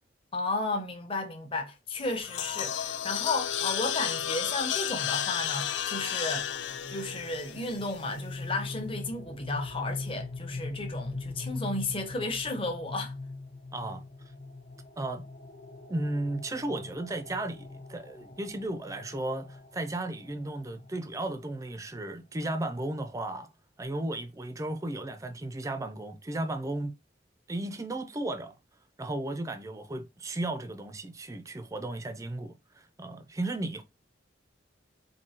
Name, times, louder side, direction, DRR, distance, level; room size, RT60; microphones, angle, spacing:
voice 1, 0.3-6.5 6.9-13.1, left 2 dB, 30° left, 0.9 m, -33 dB
sound 1, 2.0-8.3, left 9 dB, 85° left, 0.5 m, -33 dB
sound 2, 6.5-21.4, left 3 dB, 60° left, 1.0 m, -42 dB
voice 2, 13.7-14.0 15.0-15.2 15.9-23.5 23.8-26.9 27.5-28.5 29.0-33.8, right 2 dB, 20° right, 0.4 m, -35 dB
4.5 x 2.7 x 2.8 m
head